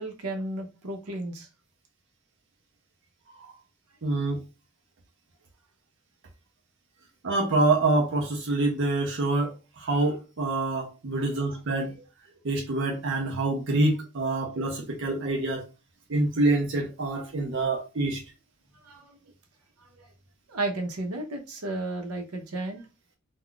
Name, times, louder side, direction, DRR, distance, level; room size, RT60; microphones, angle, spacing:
voice 1, 0.0-1.5 18.8-19.2 19.8-19.9 20.5-22.8, right 2 dB, 85° right, 0.8 m, -33 dB
voice 2, 4.0-4.4 7.2-11.9 12.4-15.7 16.1-18.2, right 2 dB, 55° right, 0.6 m, -26 dB
2.3 x 2.3 x 3.7 m
head